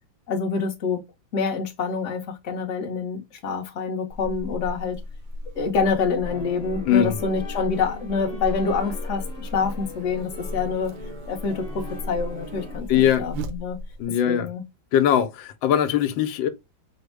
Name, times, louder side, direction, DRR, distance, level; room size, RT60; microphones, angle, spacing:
voice 1, 0.3-1.0 1.3-5.0 5.5-10.9 11.3-13.8 14.2-14.6, left 5 dB, 50° left, 1.0 m, -26 dB
Buzz, 4.1-14.1, left 1 dB, 85° right, 1.5 m, -35 dB
sound 1, 6.2-12.8, equal, 30° left, 1.1 m, -40 dB
voice 2, 6.8-7.2 12.9-13.3 14.0-14.5 14.9-16.5, left 9 dB, 90° left, 1.3 m, -21 dB
5.1 x 2.1 x 3.2 m
omnidirectional pair, 2.0 m